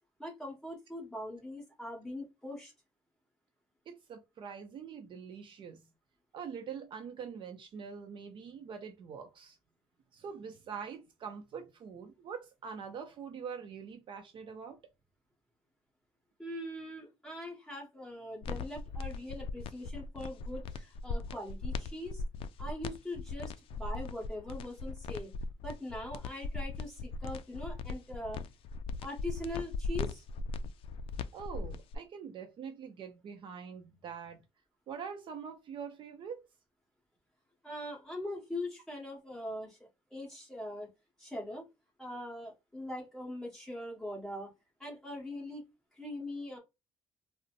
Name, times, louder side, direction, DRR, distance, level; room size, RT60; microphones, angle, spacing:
voice 1, 0.2-2.7 16.4-22.2 22.6-25.3 25.6-28.4 29.0-30.2 37.6-39.8 40.1-40.9 41.2-41.6 42.0-44.5 44.8-45.6 46.0-46.6, left 1 dB, 5° left, 1.5 m, -41 dB
voice 2, 3.9-5.9 6.3-9.6 10.1-14.8 31.3-34.4 34.9-36.4, right 6 dB, 50° right, 0.6 m, -44 dB
sound 1, 18.4-32.0, left 3 dB, 55° left, 0.4 m, -38 dB
4.0 x 2.1 x 2.5 m
cardioid pair, 145°, 11 cm